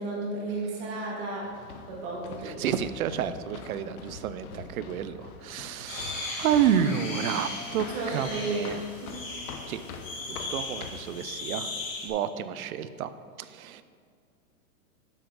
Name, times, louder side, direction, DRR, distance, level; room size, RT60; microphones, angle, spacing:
voice 1, 0.0-1.5 1.9-2.6 7.9-8.7 9.0-9.4, right 2 dB, 40° right, -3 dB, 2.1 m, -33 dB
sound 1, 1.4-11.2, left 5 dB, 80° left, 1.1 m, -44 dB
voice 2, 2.4-8.8 9.7-9.8 10.3-11.7 12.0-13.1 13.4-13.8, right 9 dB, 75° right, 13 dB, 0.7 m, -30 dB
sound 2, 5.9-12.1, left 3 dB, 65° left, 2.6 m, -37 dB
10.5 x 7.4 x 3.9 m, 2.2 s
supercardioid pair, 160°, 43 cm